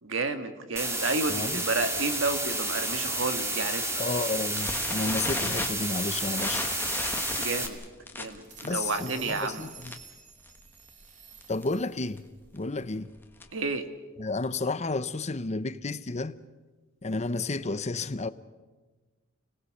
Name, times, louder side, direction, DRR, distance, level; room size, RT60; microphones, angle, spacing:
voice 1, 0.0-4.0 7.4-7.8 8.1-9.7 13.5-13.9, right 3 dB, 70° right, 1.9 m, -31 dB
sound 1, 0.8-7.7, right 2 dB, 15° right, 2.4 m, -31 dB
voice 2, 1.3-1.6 4.0-6.7 8.6-10.0 11.5-12.3 12.5-13.1 14.2-16.4 17.0-18.3, left 3 dB, 35° left, 0.8 m, -31 dB
sound 2, 4.6-10.2 10.5-10.7 11.0-11.1 11.4-11.7 12.2-13.7, left 2 dB, 10° left, 1.5 m, -36 dB
sound 3, 8.2-12.2, right 6 dB, 40° right, 3.0 m, -49 dB
30.0 x 19.0 x 6.6 m
head